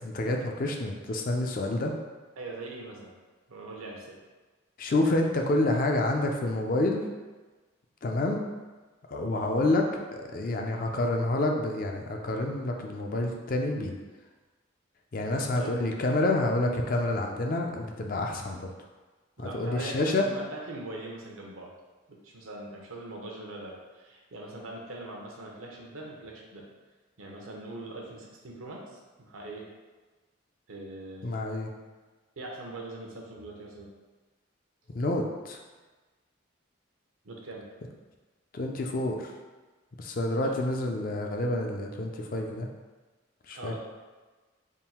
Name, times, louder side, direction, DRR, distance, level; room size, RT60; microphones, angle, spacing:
voice 1, 0.0-1.9 4.8-7.0 8.0-8.4 9.1-13.9 15.1-18.7 19.4-20.3 31.2-31.7 34.9-35.6 38.5-39.3 40.0-42.7 43.5-43.7, left 2 dB, 40° left, 2 dB, 0.4 m, -28 dB
voice 2, 2.4-3.1 3.5-4.2 15.3-15.7 19.4-21.7 22.1-26.7 27.2-29.7 30.7-31.4 32.4-33.9 37.2-37.6 40.3-40.6 41.0-41.1 43.6-43.8, right 2 dB, 85° right, -1 dB, 0.8 m, -41 dB
3.7 x 2.3 x 4.2 m, 1.3 s
head